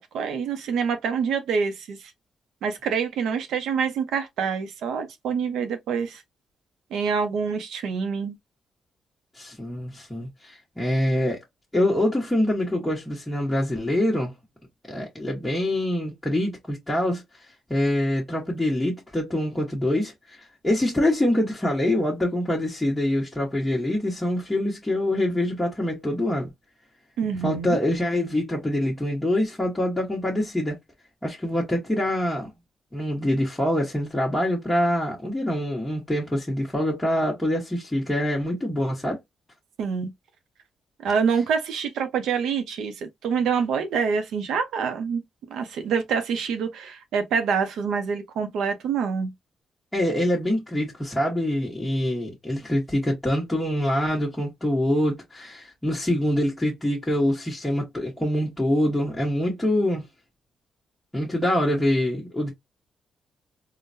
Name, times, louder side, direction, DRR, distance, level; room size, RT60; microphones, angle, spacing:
voice 1, 0.0-2.0 2.6-6.2 6.9-8.4 27.2-27.8 39.8-40.1 41.0-45.2 45.5-49.3, right 6 dB, 90° right, 0.7 m, -26 dB
voice 2, 9.4-11.4 11.7-14.3 14.9-17.2 17.7-26.5 27.4-30.8 31.2-32.5 32.9-39.2 49.9-60.1 61.1-62.5, left 1 dB, 10° left, 1.1 m, -25 dB
3.8 x 2.2 x 2.6 m
cardioid pair, 100°, 0 cm